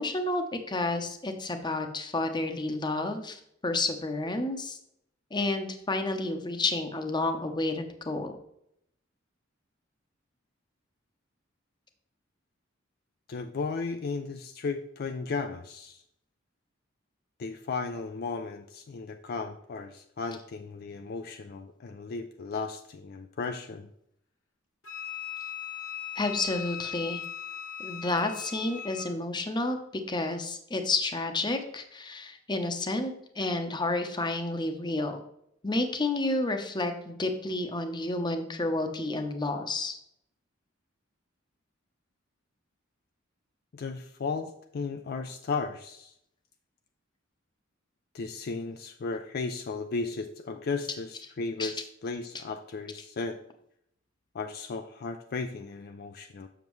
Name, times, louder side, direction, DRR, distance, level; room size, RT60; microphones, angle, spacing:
voice 1, 0.0-4.8 5.3-8.3 26.2-27.2 27.8-35.2 35.6-40.0 51.6-51.7, left 2 dB, 20° left, 6 dB, 0.8 m, -30 dB
voice 2, 13.3-16.0 17.4-23.9 43.7-46.1 48.1-53.4 54.3-56.5, left 4 dB, 50° left, 7 dB, 0.4 m, -35 dB
Wind instrument woodwind instrument, 24.8-29.1, left 9 dB, 65° left, 1.2 m, -39 dB
7.1 x 6.6 x 3.1 m, 0.74 s
head